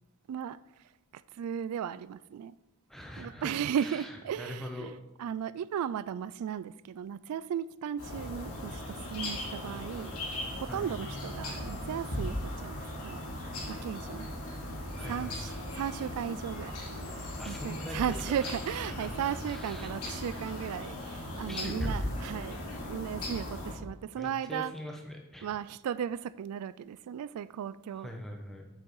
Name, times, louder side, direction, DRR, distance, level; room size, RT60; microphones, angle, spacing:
voice 1, 1.1-2.5 3.2-10.1 10.6-12.7 13.0-13.2 13.7-14.3 15.0-22.6 22.9-24.7 25.4-28.1, right 8 dB, 85° right, 0.3 m, -36 dB
voice 2, 2.9-4.9 10.7-10.9 14.9-15.6 17.4-19.9 21.5-22.0 24.2-25.6 27.9-28.7, equal, ahead, 1.1 m, -43 dB
sound 1, 8.0-23.7, left 1 dB, 85° left, 2.7 m, -38 dB
8.4 x 6.5 x 4.7 m
head